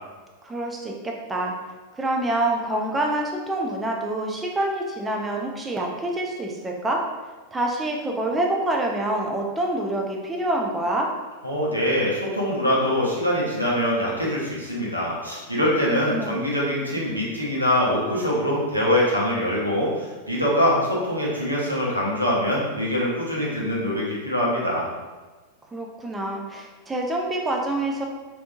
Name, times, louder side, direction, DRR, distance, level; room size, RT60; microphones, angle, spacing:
voice 1, 0.4-1.5 2.0-7.0 7.5-11.1 15.6-15.8 16.1-16.4 25.7-28.0, right 1 dB, 10° right, 0 dB, 0.5 m, -26 dB
voice 2, 11.4-24.9, equal, 90° right, -5 dB, 0.8 m, -23 dB
3.4 x 2.6 x 2.6 m, 1.3 s
figure-of-eight pair, 90°, 0 cm